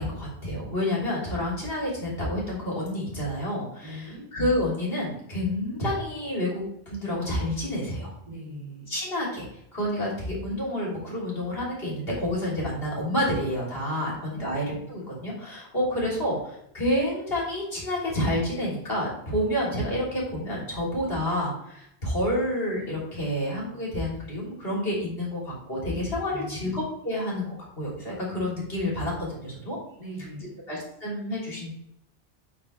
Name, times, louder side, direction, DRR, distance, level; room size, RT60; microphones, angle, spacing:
voice 1, 0.0-8.1 8.9-29.8 30.7-31.7, left 1 dB, 60° left, -5 dB, 3.5 m, -29 dB
voice 2, 3.8-4.3 8.3-8.9 14.0-14.5 26.3-26.7 30.0-30.6, equal, 40° right, -10 dB, 2.7 m, -40 dB
8.4 x 5.2 x 4.3 m, 0.75 s
omnidirectional pair, 1.1 m